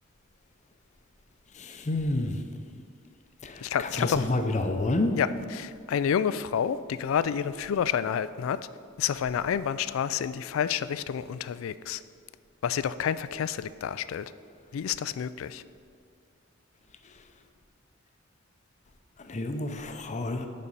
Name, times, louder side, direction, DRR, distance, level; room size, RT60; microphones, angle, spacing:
voice 1, 1.9-2.4 4.0-5.1 19.3-20.5, left 2 dB, 35° left, 6 dB, 0.6 m, -28 dB
voice 2, 3.6-4.3 5.2-8.6 9.0-12.0 12.6-14.2 14.7-15.6, left 8 dB, 75° left, 16 dB, 0.3 m, -29 dB
10.5 x 4.2 x 5.4 m, 2.2 s
head